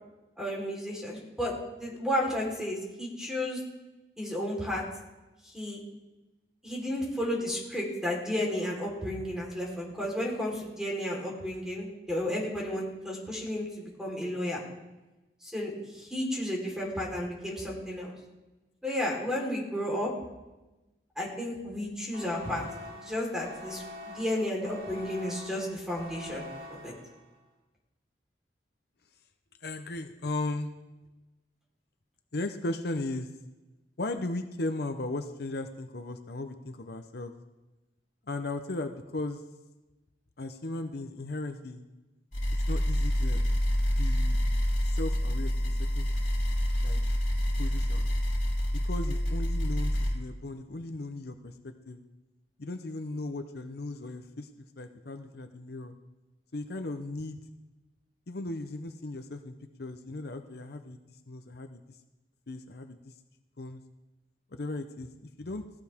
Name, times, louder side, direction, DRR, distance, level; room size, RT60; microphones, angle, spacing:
voice 1, 0.4-3.6 4.2-4.8 5.4-5.8 6.6-14.6 15.4-18.1 18.8-20.1 21.2-26.9, left 1 dB, 5° right, -2 dB, 4.0 m, -33 dB
sound 1, 22.1-27.4, left 1 dB, 90° right, 5.2 m, -45 dB
voice 2, 29.6-30.7 32.3-33.3 34.0-37.3 38.3-39.4 40.4-41.8 42.7-43.4 44.0-44.4 44.8-46.1 46.8-47.0 47.6-48.1 48.7-52.0 52.6-55.9 56.5-57.4 58.3-61.0 61.3-62.0 62.5-63.1 63.6-63.8 64.5-65.7, left 2 dB, 65° left, 7 dB, 0.8 m, -37 dB
sound 2, 42.3-50.1, equal, 45° left, 4.0 m, -27 dB
17.0 x 16.5 x 3.6 m, 1.1 s
head